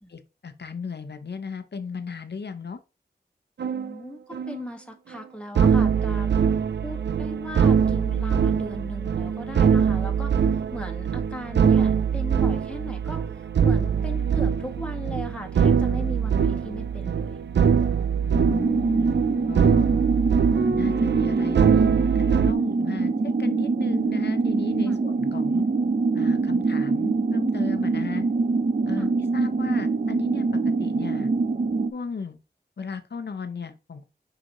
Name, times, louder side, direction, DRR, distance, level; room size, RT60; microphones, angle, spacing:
voice 1, 0.1-2.8 18.2-19.2 19.5-19.9 20.5-25.6 26.1-28.2 28.9-31.3 31.9-32.4 32.8-34.1, left 5 dB, 75° left, 0.8 m, -36 dB
sound 1, 3.6-3.9 4.3-4.6 5.6-22.5, right 7 dB, 80° right, 0.4 m, -23 dB
voice 2, 3.7-6.3 6.8-17.4 24.9-25.0 29.0-29.1, equal, 5° left, 1.7 m, -38 dB
sound 2, 18.3-31.9, right 4 dB, 50° right, 0.7 m, -24 dB
6.3 x 5.0 x 3.1 m
cardioid pair, 45°, 18 cm